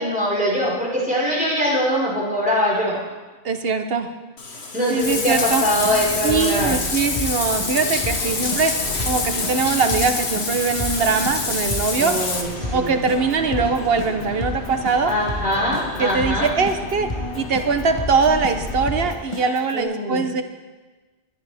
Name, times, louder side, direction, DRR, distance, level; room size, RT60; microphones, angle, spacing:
voice 1, 0.0-3.0 4.7-6.8 12.0-13.0 15.1-16.5 19.7-20.3, equal, 10° right, -6 dB, 4.7 m, -22 dB
voice 2, 3.4-4.1 4.9-5.7 6.2-12.2 12.7-15.1 16.0-20.4, right 4 dB, 65° right, 7 dB, 1.2 m, -22 dB
Bathtub (filling or washing), 4.4-12.4, left 3 dB, 85° left, 1.7 m, -26 dB
sound 1, 5.0-19.1, left 1 dB, 60° left, 2.7 m, -34 dB
Keyboard (musical), 5.5-19.8, left 2 dB, 30° left, 1.2 m, -33 dB
20.5 x 11.0 x 3.5 m, 1.3 s
omnidirectional pair, 1.1 m